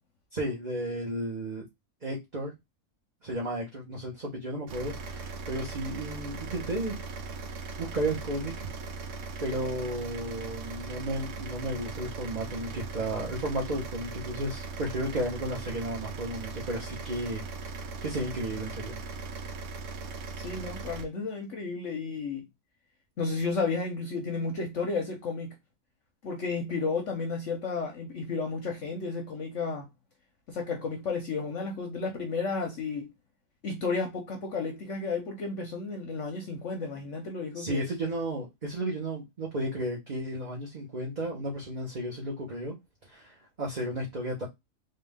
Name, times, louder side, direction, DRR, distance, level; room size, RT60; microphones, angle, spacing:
voice 1, 0.3-1.6 2.0-2.5 3.2-7.0 7.3-7.4 7.8-8.7 9.4-17.4 18.0-19.0 37.5-42.8 43.1-44.4, right 1 dB, 30° right, 1.3 m, -33 dB
sound 1, 4.7-21.0, right 4 dB, 60° right, 1.0 m, -39 dB
voice 2, 20.4-22.5 23.2-25.5 26.2-29.9 30.5-33.1 33.6-37.9, left 4 dB, 60° left, 1.0 m, -32 dB
3.7 x 2.7 x 3.5 m
omnidirectional pair, 1.6 m